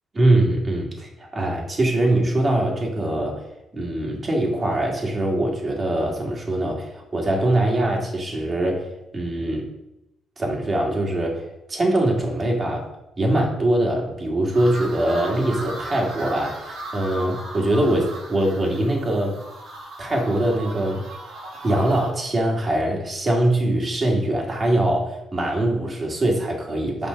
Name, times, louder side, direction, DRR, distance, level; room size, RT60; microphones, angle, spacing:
voice 1, 0.1-3.4 3.7-9.7 10.4-11.4 11.7-12.9 13.2-19.4 20.0-21.0 21.6-27.1, right 1 dB, 35° right, -1 dB, 2.5 m, -22 dB
sound 1, 14.5-22.1, right 1 dB, 90° right, 3.0 m, -36 dB
6.9 x 5.5 x 5.4 m, 0.88 s
cardioid pair, 90°, 0 cm